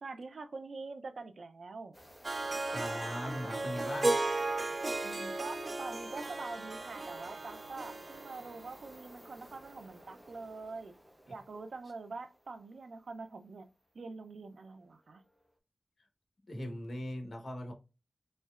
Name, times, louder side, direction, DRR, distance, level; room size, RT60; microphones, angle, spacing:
voice 1, 0.0-1.9 5.0-10.9 11.3-13.7 13.9-15.2, right 3 dB, 85° right, 0.5 m, -45 dB
sound 1, 1.9-12.6 14.6-14.7 15.2-15.4, equal, 5° right, 1.0 m, -53 dB
Harp, 2.2-9.4, right 2 dB, 45° right, 0.5 m, -36 dB
voice 2, 2.7-4.2 11.3-11.4 16.5-17.7, equal, 65° left, 1.2 m, -40 dB
4.3 x 3.1 x 2.4 m
wide cardioid pair, 80°, 0 cm